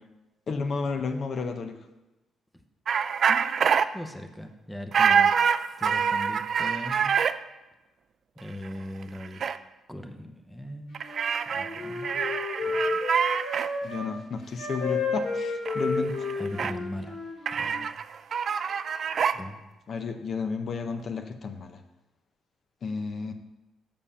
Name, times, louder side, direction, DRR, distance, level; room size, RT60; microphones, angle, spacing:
voice 1, 0.5-1.8 13.8-16.3 19.9-21.8 22.8-23.3, left 4 dB, 50° left, 6 dB, 0.7 m, -32 dB
sound 1, 2.9-3.9 4.9-7.3 8.6-8.7 9.0-9.6 10.9-13.7 15.7-15.8 16.1-16.7 17.5-19.4, right 7 dB, 55° right, 0.3 m, -25 dB
voice 2, 3.9-5.3 5.8-7.1 8.4-9.4 9.9-11.0 11.5-12.3 12.6-13.0 16.4-17.2 17.6-17.9 19.3-19.6, left 1 dB, 5° left, 6 dB, 0.7 m, -39 dB
Wind instrument woodwind instrument, 10.9-14.1 14.6-17.7, left 3 dB, 75° left, 3.0 m, -32 dB
7.0 x 5.3 x 5.5 m, 1.0 s
cardioid pair, 90°, 0 cm